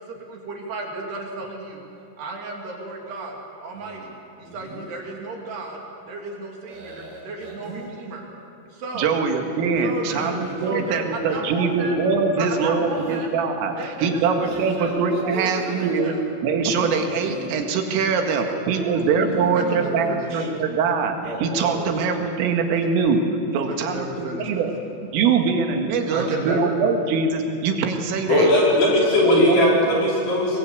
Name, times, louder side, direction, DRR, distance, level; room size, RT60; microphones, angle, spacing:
voice 1, 0.1-1.8 2.2-3.4 3.6-8.3 8.7-9.1 9.8-10.4 10.6-11.9 12.4-13.3 13.8-14.2 14.5-15.0 15.4-16.2 18.1-18.6 18.9-19.0 19.5-20.5 21.8-21.9 23.7-24.9 26.1-26.7 28.9-29.0 29.3-29.4, right 3 dB, 60° right, 0 dB, 4.7 m, -33 dB
sound 1, 3.7-4.1 4.4-5.0 6.7-7.9 10.0-11.4 12.8-13.2 14.4-16.0 16.7-17.5 19.0-20.1 21.1-22.1, right 2 dB, 40° right, 4.0 m, -36 dB
voice 2, 9.0-16.2 16.4-23.2 23.5-24.7 25.0-28.5 29.2-30.0, right 5 dB, 90° right, 4 dB, 4.4 m, -23 dB
voice 3, 28.3-30.6, left 1 dB, 55° left, -3 dB, 6.9 m, -18 dB
23.5 x 21.5 x 8.4 m, 2.8 s
omnidirectional pair, 5.7 m